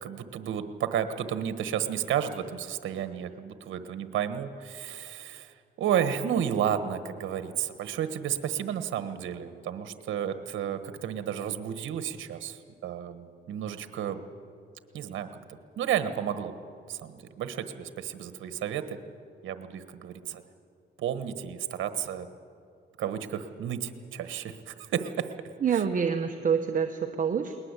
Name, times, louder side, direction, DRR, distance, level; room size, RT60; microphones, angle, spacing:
voice 1, 0.0-14.2 14.9-16.5 16.9-19.0 19.4-20.4 21.0-22.3 23.0-25.3, right 9 dB, 75° right, 10 dB, 1.4 m, -32 dB
voice 2, 25.6-27.5, right 7 dB, 40° right, 5 dB, 1.2 m, -27 dB
20.5 x 20.0 x 8.3 m, 2.4 s
cardioid pair, 90°, 20 cm